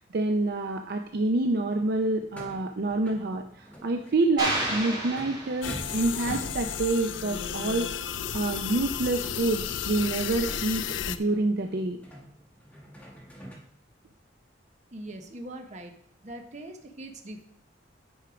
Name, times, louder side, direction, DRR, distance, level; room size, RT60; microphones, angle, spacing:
voice 1, 0.0-12.0, right 2 dB, 60° right, 5 dB, 0.6 m, -27 dB
sound 1, 1.4-13.6, equal, 10° left, 1.7 m, -47 dB
sound 2, 4.4-6.1, right 1 dB, 25° right, 2.3 m, -31 dB
sound 3, 5.6-11.2, left 8 dB, 90° left, 0.5 m, -33 dB
voice 2, 14.9-15.9 16.2-17.4, right 1 dB, 40° right, 4 dB, 1.0 m, -41 dB
10.0 x 4.5 x 5.0 m, 0.66 s
head